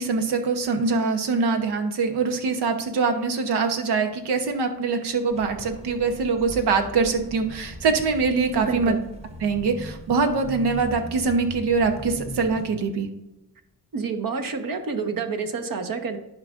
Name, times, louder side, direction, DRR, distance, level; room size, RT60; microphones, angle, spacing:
voice 1, 0.0-9.0 9.4-13.1, right 4 dB, 90° right, 6 dB, 1.1 m, -23 dB
sound 1, 5.3-12.7, equal, 15° right, 1.2 m, -40 dB
voice 2, 8.6-9.0 13.9-16.2, right 5 dB, 60° right, 7 dB, 1.2 m, -28 dB
11.0 x 5.0 x 2.5 m, 0.94 s
cardioid pair, 80°, 38 cm